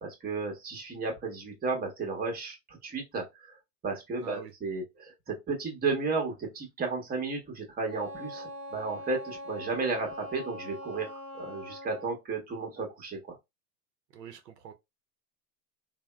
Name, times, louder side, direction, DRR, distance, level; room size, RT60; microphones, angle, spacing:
voice 1, 0.0-3.6 3.8-13.3, right 4 dB, 20° right, 1.0 m, -33 dB
voice 2, 4.2-4.5 14.1-14.7, right 8 dB, 85° right, 0.6 m, -45 dB
Wind instrument woodwind instrument, 7.9-12.2, left 1 dB, 30° left, 1.3 m, -42 dB
3.3 x 2.1 x 2.2 m
hypercardioid pair, 105°, 48 cm